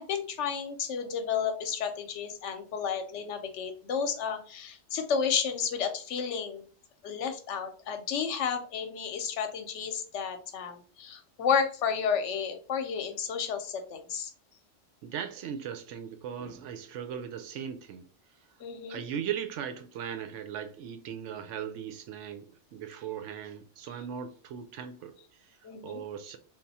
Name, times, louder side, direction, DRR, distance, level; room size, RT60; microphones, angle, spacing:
voice 1, 0.0-6.6 7.0-14.3 18.6-19.0 25.6-26.0, left 6 dB, 80° left, 1.0 m, -32 dB
voice 2, 15.0-18.1 18.9-25.6 25.8-26.4, right 8 dB, 90° right, 0.9 m, -38 dB
3.5 x 2.4 x 4.0 m
omnidirectional pair, 1.2 m